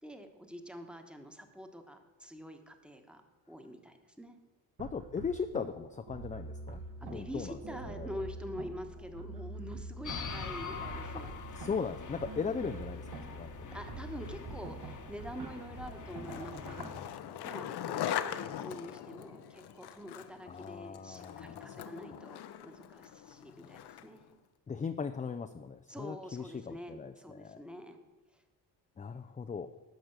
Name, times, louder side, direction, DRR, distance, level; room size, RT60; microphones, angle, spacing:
voice 1, 0.0-3.2 3.5-4.4 7.0-11.3 13.7-17.0 17.4-24.3 25.9-28.0 28.3-28.4, equal, ahead, 6 dB, 1.2 m, -46 dB
voice 2, 4.8-7.6 7.9-8.1 11.6-13.5 20.5-21.8 22.1-22.2 24.7-27.6 29.0-29.7, left 5 dB, 20° left, 8 dB, 0.4 m, -38 dB
sound 1, 4.8-16.9, right 3 dB, 65° right, 1.7 m, -45 dB
sound 2, 10.0-17.2, left 5 dB, 45° left, 1.2 m, -45 dB
Skateboard, 15.9-24.2, left 10 dB, 70° left, 0.8 m, -41 dB
12.5 x 5.1 x 8.0 m, 1.2 s
cardioid pair, 105°, 40 cm